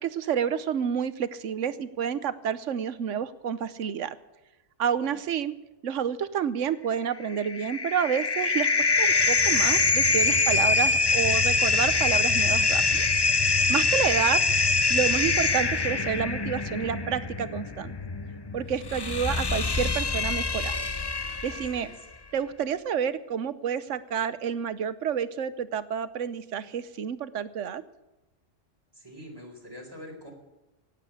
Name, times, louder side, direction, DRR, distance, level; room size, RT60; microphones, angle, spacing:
voice 1, 0.0-4.2 4.8-5.5 5.8-13.1 13.7-14.4 14.9-17.9 18.5-20.8 21.4-21.9 22.3-27.8, right 8 dB, 80° right, 15 dB, 1.2 m, -29 dB
sound 1, 7.2-21.8, left 3 dB, 25° left, 0.6 m, -24 dB
voice 2, 21.5-22.0 28.9-30.3, left 1 dB, 20° right, 0 dB, 4.2 m, -45 dB
18.0 x 8.3 x 8.2 m, 1.0 s
omnidirectional pair, 1.3 m